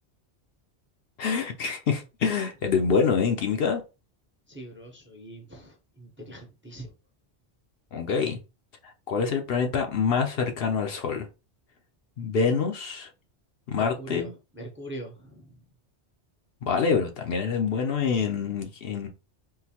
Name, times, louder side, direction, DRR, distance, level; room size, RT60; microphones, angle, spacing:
voice 1, 1.2-3.8 7.9-8.4 9.1-11.3 12.2-13.1 13.7-14.3 16.6-19.1, left 5 dB, 65° left, 0.8 m, -26 dB
voice 2, 4.5-6.9 13.8-15.6, right 1 dB, 15° right, 0.6 m, -42 dB
3.8 x 2.5 x 2.8 m
omnidirectional pair, 1.2 m